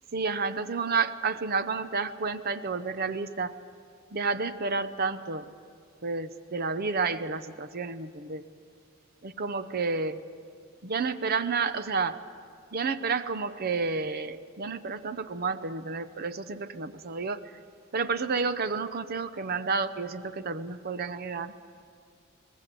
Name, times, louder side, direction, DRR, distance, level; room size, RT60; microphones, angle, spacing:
voice 1, 0.1-3.6 4.1-5.5 6.0-8.4 9.2-10.2 10.8-12.2 12.7-17.5 17.9-21.5, right 4 dB, 45° right, 12 dB, 0.7 m, -30 dB
23.5 x 19.5 x 7.6 m, 2.3 s
head